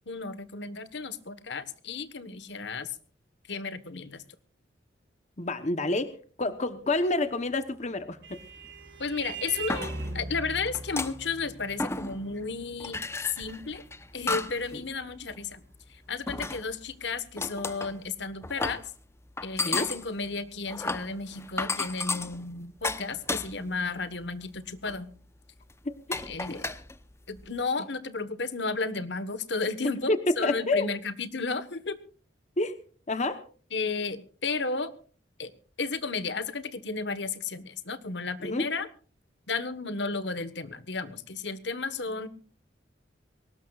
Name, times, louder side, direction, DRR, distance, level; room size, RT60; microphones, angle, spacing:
voice 1, 0.1-2.9 3.5-4.2 9.0-13.0 13.4-13.8 14.1-15.6 15.9-18.8 19.4-25.1 26.3-26.7 27.3-32.0 33.7-34.9 35.4-35.5 35.8-38.9 39.5-42.3, left 4 dB, 70° left, 13 dB, 1.4 m, -33 dB
voice 2, 5.4-8.4 14.7-14.8 19.6-19.9 25.8-26.6 30.1-30.9 32.6-32.8 33.1-33.4 38.4-38.6, left 2 dB, 40° left, 10 dB, 1.0 m, -29 dB
Vehicle horn car horn honking, 7.6-16.6, right 3 dB, 75° right, 5.3 m, -42 dB
sound 1, 8.6-8.7 9.3-10.3 10.7-11.5 11.8-12.4 12.8-14.7 15.1-15.4 16.3-16.9 17.4-18.0 18.4-18.9 19.4-23.8 24.2-24.4 24.9-25.0 25.7-25.8 26.1-27.5, left 3 dB, 15° left, 0.9 m, -34 dB
23.0 x 19.0 x 2.5 m, 0.41 s
head